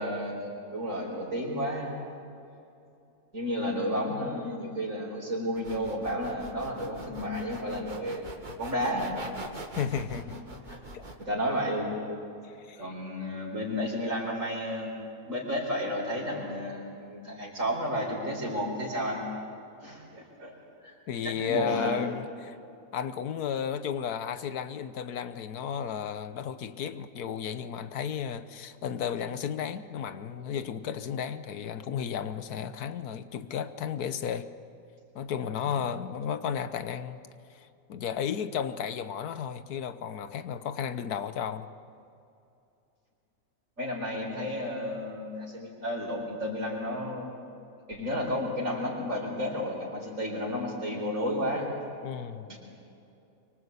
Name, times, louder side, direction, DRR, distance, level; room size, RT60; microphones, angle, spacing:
voice 1, 0.0-1.9 3.3-8.2 8.6-9.2 10.6-10.8 11.2-12.0 12.8-14.9 15.3-19.2 19.8-20.5 20.8-20.9 21.2-22.0 43.8-47.3 47.9-51.7 52.5-52.6, equal, 55° right, -2 dB, 4.9 m, -32 dB
sound 1, 5.6-11.2, right 2 dB, 30° right, 2.0 m, -43 dB
voice 2, 9.8-10.4 10.9-11.0 12.4-12.9 21.1-22.6 22.9-34.5 35.1-37.2 37.5-41.7 52.0-52.5, left 8 dB, 85° left, 11 dB, 1.5 m, -33 dB
25.0 x 24.5 x 8.2 m, 2.7 s
omnidirectional pair, 1.6 m